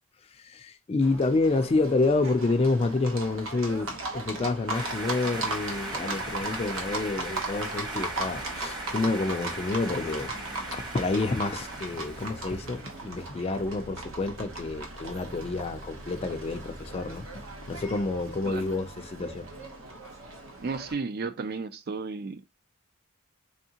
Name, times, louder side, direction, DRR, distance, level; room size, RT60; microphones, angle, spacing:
voice 1, 0.3-17.3 17.7-19.5, left 3 dB, 30° left, 0.4 m, -28 dB
Livestock farm animals working animals, 1.0-20.9, right 2 dB, 70° right, 0.9 m, -38 dB
sound 1, 4.7-13.0, right 2 dB, 20° right, 1.0 m, -38 dB
voice 2, 20.6-22.5, right 4 dB, 50° right, 0.5 m, -33 dB
3.6 x 3.5 x 2.8 m
head